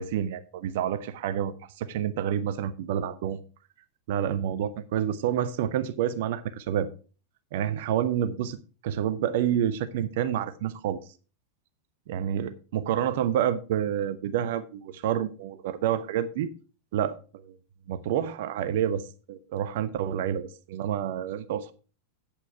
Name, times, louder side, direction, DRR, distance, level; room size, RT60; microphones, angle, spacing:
voice 1, 0.0-3.4 4.1-6.9 7.5-8.6 8.8-11.0 12.1-16.5 16.9-17.6 17.9-21.7, right 10 dB, 55° right, 0.7 m, -28 dB
8.6 x 8.3 x 4.4 m
figure-of-eight pair, 90°, 0 cm